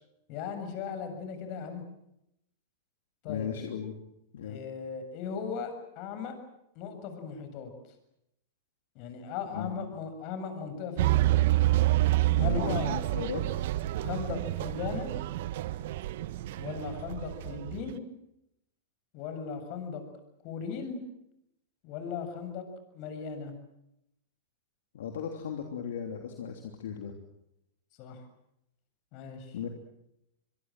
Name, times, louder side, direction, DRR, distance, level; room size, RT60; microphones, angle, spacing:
voice 1, 0.3-1.8 3.2-3.5 4.4-6.3 6.8-7.7 9.0-11.5 12.4-12.9 14.0-15.1 16.6-18.0 19.1-20.0 20.4-21.0 21.8-22.6 22.9-23.5 28.0-28.2 29.1-29.6, left 6 dB, 50° left, 8 dB, 7.3 m, -37 dB
voice 2, 3.2-4.0 4.3-4.6 9.5-9.8 12.3-13.6 24.9-27.1 29.5-29.7, left 7 dB, 70° left, 4 dB, 3.1 m, -36 dB
sound 1, 11.0-18.0, right 16 dB, 60° right, 1.3 m, -28 dB
25.5 x 23.0 x 7.7 m, 0.82 s
hypercardioid pair, 105°, 0 cm